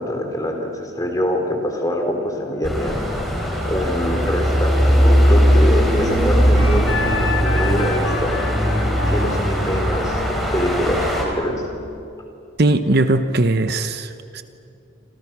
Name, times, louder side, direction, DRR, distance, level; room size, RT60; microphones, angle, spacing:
voice 1, 0.0-3.0 3.7-8.4 9.1-10.2 10.5-11.6, left 1 dB, 15° left, 2 dB, 3.6 m, -24 dB
sound 1, 2.6-11.2, equal, ahead, 4.4 m, -18 dB
Wind instrument woodwind instrument, 6.6-11.9, left 4 dB, 80° left, 3.0 m, -30 dB
voice 2, 12.6-14.4, right 2 dB, 50° right, 9 dB, 0.9 m, -19 dB
28.0 x 27.0 x 6.1 m, 2.6 s
head